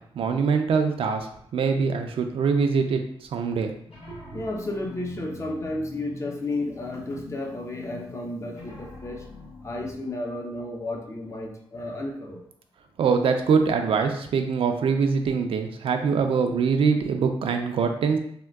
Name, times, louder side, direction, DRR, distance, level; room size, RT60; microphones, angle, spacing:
voice 1, 0.1-3.0 3.3-3.7 4.1-4.2 13.0-18.2, right 5 dB, 70° right, 5 dB, 0.4 m, -23 dB
sound 1, 3.9-10.0, left 2 dB, 70° left, 0.9 m, -44 dB
voice 2, 4.3-9.2 9.6-12.4, left 2 dB, 30° left, 2 dB, 0.5 m, -32 dB
3.5 x 2.2 x 2.2 m, 0.66 s
cardioid pair, 95°, 10 cm